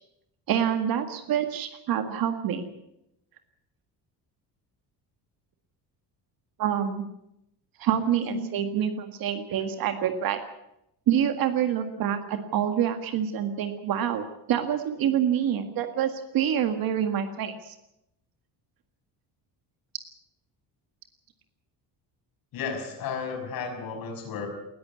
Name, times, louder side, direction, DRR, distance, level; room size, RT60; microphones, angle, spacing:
voice 1, 0.5-2.7 6.6-7.0 7.8-10.4 11.1-17.7, right 9 dB, 60° right, 7 dB, 2.0 m, -27 dB
voice 2, 22.5-24.5, left 5 dB, 60° left, 3 dB, 6.0 m, -33 dB
19.5 x 14.5 x 9.7 m, 0.82 s
cardioid pair, 170°, 40 cm